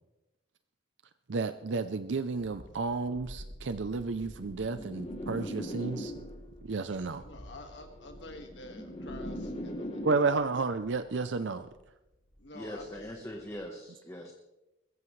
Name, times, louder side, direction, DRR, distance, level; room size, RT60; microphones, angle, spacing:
voice 1, 1.3-6.2 6.7-7.2 10.0-11.7, right 4 dB, 70° right, 0.6 m, -31 dB
Thunderstorm, 2.3-13.7, equal, 85° left, 6.9 m, -52 dB
sound 1, 4.2-6.6 7.6-10.6, equal, 30° left, 2.0 m, -40 dB
voice 2, 7.2-10.5 12.4-13.5, left 2 dB, 70° left, 1.9 m, -49 dB
voice 3, 12.5-14.3, equal, 15° left, 1.2 m, -41 dB
21.5 x 15.0 x 3.2 m
head